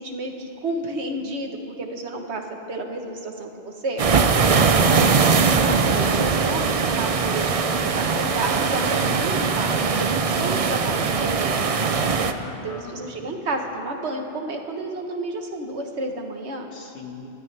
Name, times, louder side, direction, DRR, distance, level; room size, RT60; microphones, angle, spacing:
voice 1, 0.0-2.4 2.7-4.1 5.6-12.1 12.6-16.7, right 2 dB, 70° right, 3 dB, 1.5 m, -31 dB
sound 1, 4.0-12.3, right 5 dB, 40° right, 0.5 m, -21 dB
voice 2, 4.5-5.4 12.4-13.0 16.7-17.3, left 4 dB, 75° left, 0 dB, 1.9 m, -40 dB
25.0 x 13.0 x 3.4 m, 2.7 s
omnidirectional pair, 1.2 m